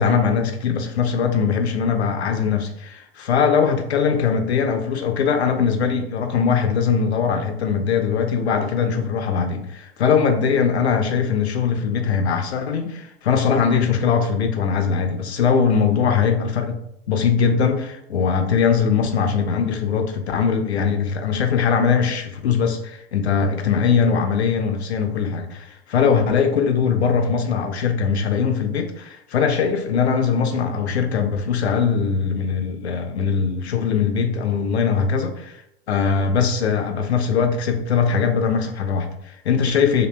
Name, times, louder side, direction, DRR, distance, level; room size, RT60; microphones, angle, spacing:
voice 1, 0.0-16.8 17.1-35.6 35.9-40.1, left 6 dB, 80° left, 0.5 m, -21 dB
2.6 x 2.0 x 3.1 m
figure-of-eight pair, 90°, 32 cm